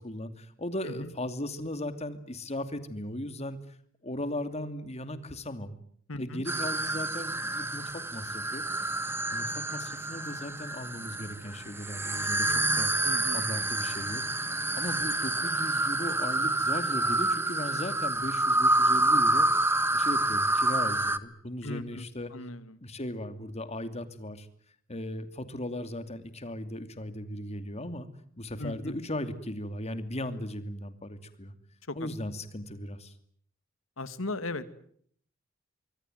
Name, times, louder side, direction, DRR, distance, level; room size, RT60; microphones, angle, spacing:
voice 1, 0.0-3.8 4.0-5.8 6.1-8.6 9.3-12.9 13.3-14.2 14.8-19.5 19.9-22.3 22.8-24.5 24.9-28.1 28.4-31.5 31.9-33.1, left 1 dB, 35° left, 10 dB, 2.7 m, -37 dB
voice 2, 6.1-6.4 13.0-13.4 21.6-22.1 22.3-22.8 28.6-29.0 31.9-32.0 34.0-34.7, left 2 dB, 80° left, 13 dB, 2.2 m, -37 dB
sound 1, 6.5-21.2, right 2 dB, 10° right, 1.3 m, -28 dB
25.5 x 23.5 x 9.4 m, 0.63 s
head